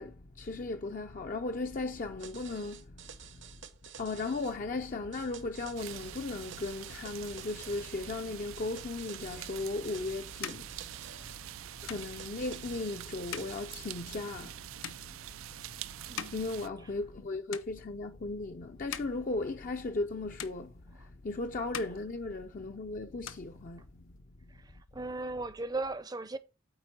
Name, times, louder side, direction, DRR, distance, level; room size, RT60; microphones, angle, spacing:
voice 1, 0.0-3.0 3.3-3.4 4.0-10.9 11.5-11.6 11.8-14.6 16.3-24.1, left 3 dB, 40° left, 0.5 m, -36 dB
sound 1, 2.2-4.6 5.1-8.0 8.5-11.4 12.0-13.7, right 8 dB, 60° right, 0.9 m, -51 dB
sound 2, 5.7-16.7, right 12 dB, 90° right, 0.4 m, -45 dB
sound 3, 10.3-17.2 17.5-18.2 18.6-20.1 20.4-21.3 21.6-22.8 23.1-24.2, left 9 dB, 90° left, 0.7 m, -46 dB
voice 2, 16.1-16.4 21.0-21.1 24.6-26.4, right 2 dB, 20° right, 0.6 m, -37 dB
8.8 x 4.4 x 4.3 m
head